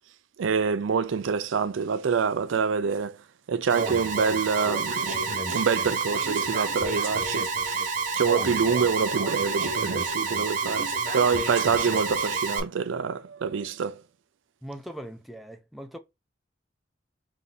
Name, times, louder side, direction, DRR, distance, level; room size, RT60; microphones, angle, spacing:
voice 1, 0.4-3.2 3.5-7.5 7.8-14.0, right 6 dB, 75° right, 0.4 m, -26 dB
Alarm, 3.7-12.6, right 4 dB, 45° right, 0.9 m, -28 dB
voice 2, 14.6-16.0, right 1 dB, ahead, 0.4 m, -40 dB
3.5 x 2.7 x 3.9 m
head